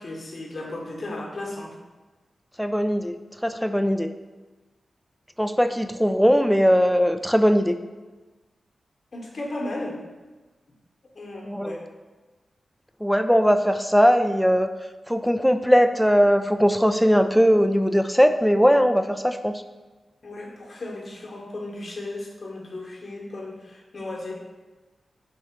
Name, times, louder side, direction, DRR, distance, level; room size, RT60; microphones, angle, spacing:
voice 1, 0.0-1.8 9.1-10.0 11.1-11.8 20.2-24.4, left 2 dB, 55° left, -1 dB, 1.0 m, -35 dB
voice 2, 2.6-3.1 3.4-4.1 5.4-7.7 11.5-11.7 13.0-14.7 15.1-19.6, equal, ahead, 8 dB, 0.3 m, -19 dB
3.7 x 3.2 x 4.4 m, 1.2 s
cardioid pair, 45°, 0 cm